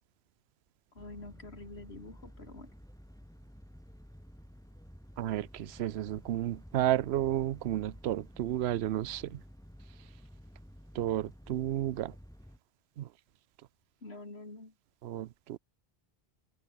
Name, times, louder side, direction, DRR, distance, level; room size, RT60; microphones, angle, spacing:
voice 1, 0.9-2.7 14.0-14.7, left 2 dB, 85° left, 4.1 m, -47 dB
sound 1, 1.0-12.6, equal, 5° left, 3.0 m, -52 dB
voice 2, 5.2-9.4 10.9-12.1 13.0-13.1 15.0-15.6, right 13 dB, 85° right, 0.9 m, -32 dB
omnidirectional pair, 1.0 m